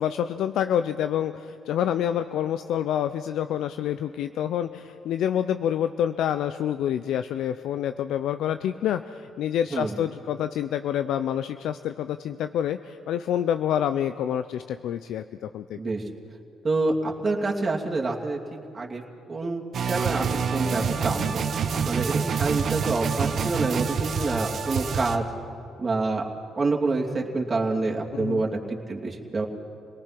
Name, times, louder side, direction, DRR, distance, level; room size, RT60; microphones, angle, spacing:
voice 1, 0.0-15.8 28.1-28.5, left 10 dB, 80° left, 10 dB, 0.5 m, -27 dB
voice 2, 16.6-18.4 18.7-19.0 19.3-21.4 21.8-25.3 25.8-26.2 26.6-29.5, right 3 dB, 30° right, -1 dB, 2.7 m, -27 dB
sound 1, 19.7-25.2, right 6 dB, 60° right, 1.3 m, -27 dB
28.5 x 19.0 x 6.0 m, 2.5 s
cardioid pair, 90°, 0 cm